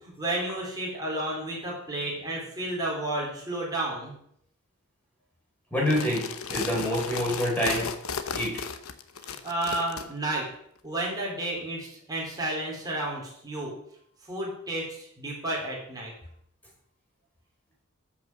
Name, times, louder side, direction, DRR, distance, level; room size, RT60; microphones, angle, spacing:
voice 1, 0.0-4.2 9.3-10.5 10.8-13.8 14.3-16.1, right 1 dB, 20° right, -4 dB, 4.3 m, -32 dB
voice 2, 5.7-6.2 6.5-7.9 8.3-8.6, equal, 5° left, -3 dB, 5.0 m, -26 dB
sound 1, 5.8-10.1, left 6 dB, 85° left, 1.0 m, -34 dB
13.5 x 6.2 x 6.4 m, 0.69 s
head